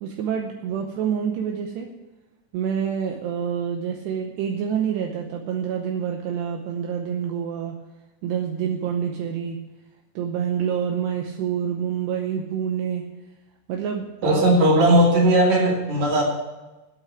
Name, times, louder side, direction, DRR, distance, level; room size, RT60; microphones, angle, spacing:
voice 1, 0.0-1.9 2.5-7.8 8.2-9.6 10.2-13.1 13.7-14.4, right 8 dB, 80° right, 3 dB, 2.9 m, -27 dB
voice 2, 14.2-16.2, right 1 dB, 45° right, -2 dB, 3.7 m, -17 dB
9.0 x 8.8 x 9.0 m, 1.1 s
omnidirectional pair, 5.0 m